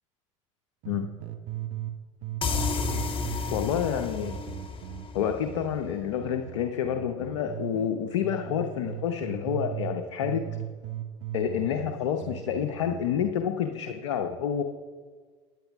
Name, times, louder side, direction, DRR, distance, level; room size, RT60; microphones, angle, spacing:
sound 1, 0.8-2.0 2.2-7.9 8.2-10.0 10.2-13.3, right 13 dB, 60° right, 1.0 m, -37 dB
sound 2, 2.4-5.9, left 4 dB, 35° left, 1.3 m, -32 dB
voice 1, 3.5-4.4 5.1-10.5 11.3-14.6, left 8 dB, 80° left, 5 dB, 0.7 m, -28 dB
14.0 x 9.1 x 3.5 m, 1.5 s
hypercardioid pair, 75°, 16 cm